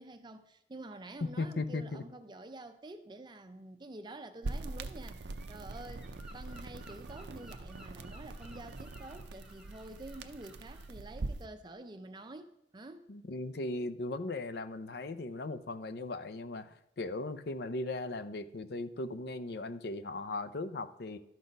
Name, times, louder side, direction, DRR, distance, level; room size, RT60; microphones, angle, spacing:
voice 1, 0.0-5.2 5.5-13.1, right 2 dB, 25° right, 0.5 m, -48 dB
voice 2, 1.4-2.0 13.1-21.2, left 2 dB, 60° left, 0.5 m, -38 dB
sound 1, 4.4-11.5, right 2 dB, 75° right, 0.5 m, -43 dB
Gull seagull, 5.1-10.9, equal, 5° right, 0.8 m, -57 dB
12.5 x 4.2 x 5.2 m
head